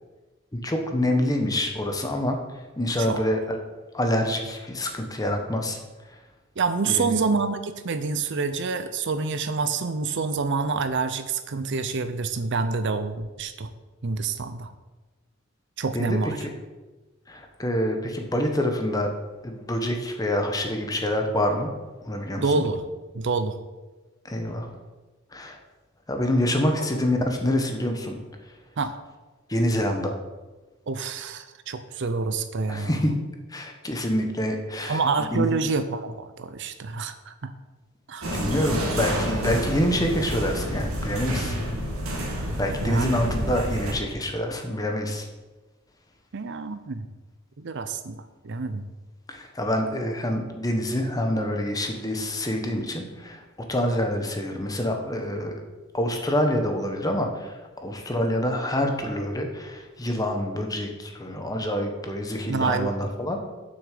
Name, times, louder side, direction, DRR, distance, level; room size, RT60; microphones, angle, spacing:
voice 1, 0.5-2.4 2.8-3.6 3.9-5.8 6.9-7.2 15.9-16.5 17.3-19.1 19.4-21.7 22.0-22.6 24.2-24.7 25.3-25.6 26.1-28.2 29.5-30.2 32.7-33.1 33.5-35.5 38.3-41.6 42.6-45.3 49.3-53.4 53.7-55.5 55.9-57.5 57.8-63.4, left 1 dB, 20° left, 3 dB, 1.2 m, -26 dB
voice 2, 6.6-13.7 14.0-14.7 15.8-16.4 22.3-22.9 23.1-23.6 26.8-26.9 28.8-29.0 30.9-33.1 34.9-37.5 38.1-38.3 42.8-43.2 46.3-47.1 47.6-48.8 62.5-62.9, right 4 dB, 60° right, 10 dB, 0.6 m, -27 dB
sound 1, 38.2-43.9, equal, 90° right, 2.1 m, -29 dB
7.0 x 6.5 x 6.7 m, 1.2 s
head